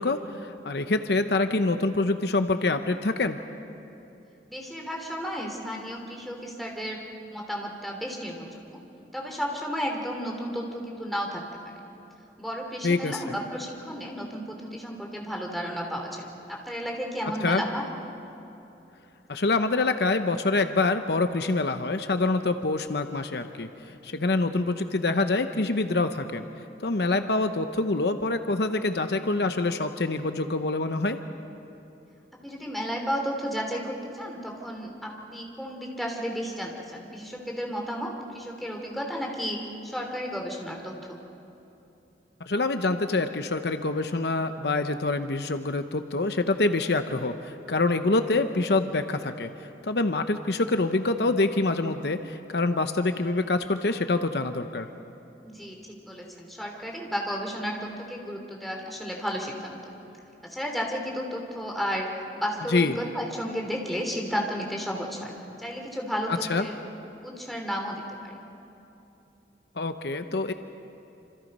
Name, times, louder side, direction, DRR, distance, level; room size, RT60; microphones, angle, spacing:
voice 1, 0.0-3.4 12.8-13.3 17.4-17.6 19.3-23.7 24.0-26.5 26.8-31.2 42.4-49.5 49.8-54.9 62.7-63.0 66.5-66.7 69.8-70.5, left 3 dB, 65° left, 8 dB, 0.8 m, -26 dB
voice 2, 4.5-7.0 7.3-8.8 9.1-11.4 12.4-17.8 32.4-39.6 39.8-41.2 55.4-59.8 60.4-62.1 62.3-65.3 65.6-66.8 67.2-68.3, equal, ahead, -1 dB, 3.1 m, -33 dB
27.0 x 27.0 x 5.4 m, 2.9 s
head